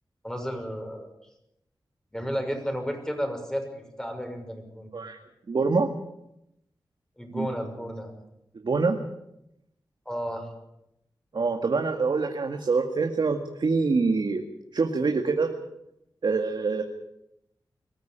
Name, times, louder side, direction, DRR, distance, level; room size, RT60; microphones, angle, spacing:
voice 1, 0.2-1.1 2.1-4.9 7.2-8.1 10.1-10.5, equal, 5° left, 4 dB, 6.1 m, -32 dB
voice 2, 5.5-5.9 7.3-7.5 8.6-9.0 11.3-14.4 14.7-15.5 16.2-16.8, right 4 dB, 65° right, 4 dB, 2.0 m, -25 dB
23.5 x 15.0 x 9.0 m, 0.84 s
wide cardioid pair, 80°, 8 cm